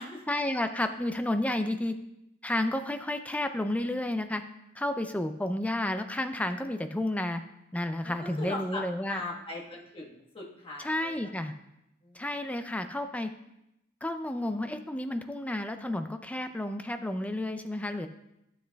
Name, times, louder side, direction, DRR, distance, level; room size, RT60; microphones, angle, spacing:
voice 1, 0.3-1.9 2.4-4.4 4.8-7.4 7.7-9.2 10.8-11.5 12.1-13.3 14.0-18.1, left 1 dB, 5° left, 8 dB, 0.4 m, -31 dB
voice 2, 8.0-11.3 12.0-12.5, left 2 dB, 25° left, -3 dB, 1.3 m, -40 dB
12.5 x 7.2 x 2.3 m, 0.85 s
head